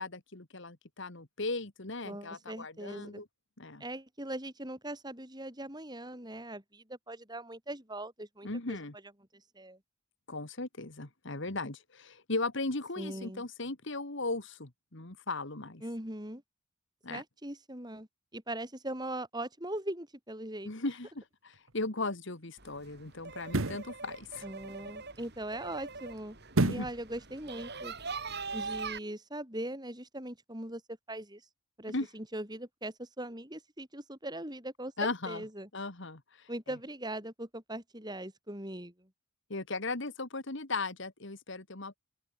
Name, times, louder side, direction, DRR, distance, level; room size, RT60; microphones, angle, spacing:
voice 1, 0.0-3.3 3.6-3.8 8.4-8.9 10.3-15.8 17.0-17.2 20.7-24.4 26.6-26.9 31.9-32.1 35.0-35.4 35.7-36.5 39.5-42.0, left 2 dB, 60° left, 2.2 m, -37 dB
voice 2, 2.0-3.2 3.8-8.8 9.3-9.8 13.0-13.4 15.8-16.4 17.1-20.7 24.4-26.4 26.7-27.9 28.5-30.8 31.1-31.4 31.8-35.7 36.5-39.1, right 1 dB, 20° right, 7.6 m, -40 dB
sound 1, 21.5-21.7 23.4-23.9 26.5-27.0 27.4-27.5, right 2 dB, 75° right, 1.3 m, -29 dB
sound 2, 22.6-29.0, right 4 dB, 50° right, 5.8 m, -42 dB
open air
head